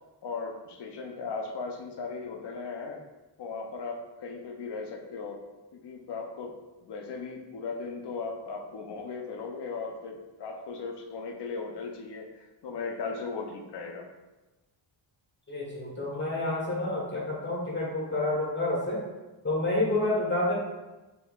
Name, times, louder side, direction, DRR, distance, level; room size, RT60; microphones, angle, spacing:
voice 1, 0.2-3.0 3.4-5.4 5.7-6.6 6.8-14.1 20.1-20.4, left 4 dB, 60° left, 2 dB, 0.6 m, -37 dB
voice 2, 15.5-19.0 19.4-20.5, left 2 dB, 25° left, -4 dB, 1.1 m, -29 dB
4.4 x 2.9 x 2.3 m, 1.1 s
wide cardioid pair, 115°, 48 cm